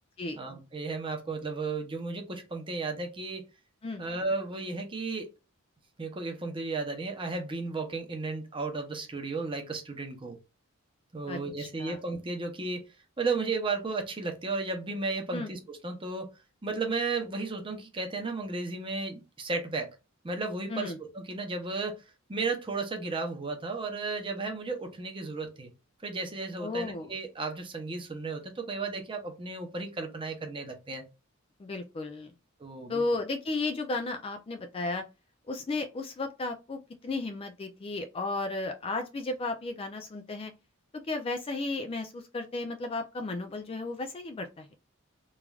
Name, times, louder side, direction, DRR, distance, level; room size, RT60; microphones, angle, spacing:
voice 1, 0.4-3.5 4.0-5.3 6.0-10.4 11.1-12.8 13.2-16.3 16.6-19.9 20.2-22.0 22.3-25.7 26.0-31.0 32.6-33.0, right 3 dB, 25° right, 0.7 m, -34 dB
voice 2, 11.3-12.0 15.3-15.5 20.7-21.0 26.6-27.1 31.6-32.3 32.9-35.0 35.5-40.5 41.1-44.7, left 3 dB, 25° left, 0.3 m, -34 dB
3.1 x 2.4 x 2.3 m
head